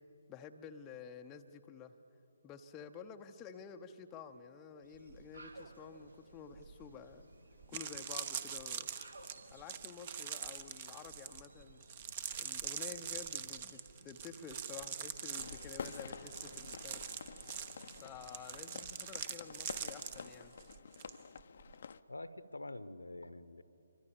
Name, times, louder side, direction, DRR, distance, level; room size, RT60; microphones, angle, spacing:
voice 1, 0.3-1.9 2.4-7.3 7.7-8.9 9.5-11.9 12.4-17.0 18.0-20.5, left 6 dB, 15° left, 5 dB, 0.8 m, -51 dB
sound 1, 4.8-19.7, right 2 dB, 70° right, 2.5 m, -59 dB
sound 2, 7.1-7.2 7.6-21.1 21.4-21.7, right 8 dB, 30° right, 1.0 m, -44 dB
sound 3, 15.4-22.0, left 6 dB, 45° left, 0.7 m, -49 dB
voice 2, 22.1-23.6, left 2 dB, 70° left, 13 dB, 1.1 m, -46 dB
27.0 x 23.5 x 7.2 m, 3.0 s
figure-of-eight pair, 145°, 0 cm